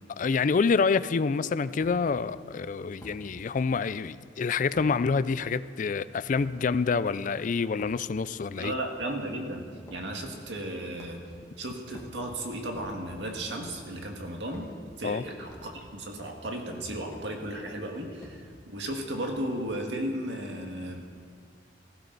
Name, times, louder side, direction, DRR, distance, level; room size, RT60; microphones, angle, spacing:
voice 1, 0.1-8.7 15.0-15.2, left 5 dB, 45° left, 0.4 m, -27 dB
sound 1, 1.8-2.0 3.0-3.2 4.7-4.9 6.4-6.5 7.6-8.2 8.6-8.8 9.8-10.1 11.0-11.4 11.9-12.2 12.7-13.2 13.6-13.9 14.5-14.7 15.5-15.7 17.1-17.3 18.2-18.4 19.3-19.6, equal, 20° left, 2.3 m, -49 dB
voice 2, 8.6-11.2 11.6-14.7 15.0-21.0, right 1 dB, 80° right, 1.9 m, -35 dB
18.5 x 15.0 x 4.0 m
head